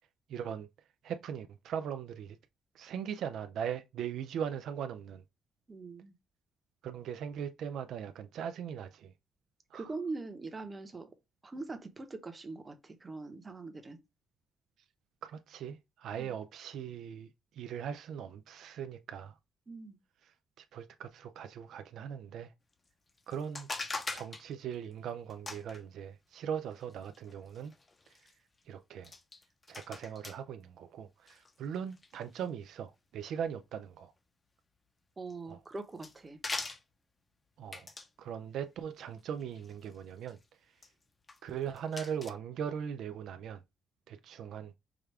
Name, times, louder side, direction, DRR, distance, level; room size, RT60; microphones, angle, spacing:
voice 1, 0.3-0.7 1.0-2.4 2.8-5.2 6.8-9.1 9.7-9.9 15.2-17.3 17.6-19.3 20.6-22.5 23.3-23.7 24.1-27.7 28.7-29.1 29.7-34.1 35.5-35.6 37.6-37.9 38.2-40.4 41.4-43.6 44.1-44.8, right 8 dB, 75° right, 0.3 m, -39 dB
voice 2, 5.7-6.1 9.7-11.1 11.4-14.0 16.2-16.4 19.7-20.0 35.2-36.4, right 3 dB, 25° right, 0.9 m, -42 dB
sound 1, 23.1-24.5 25.3-25.8 26.8-28.3 29.0-30.4 31.3-32.4 35.3-35.4 35.8-36.2 36.4-36.8 37.7-38.1 39.4-40.0 40.3-40.4 40.8-40.9 41.3-41.4 41.7-42.3, left 3 dB, 30° left, 0.6 m, -42 dB
4.9 x 2.3 x 3.2 m
cardioid pair, 90°, 0 cm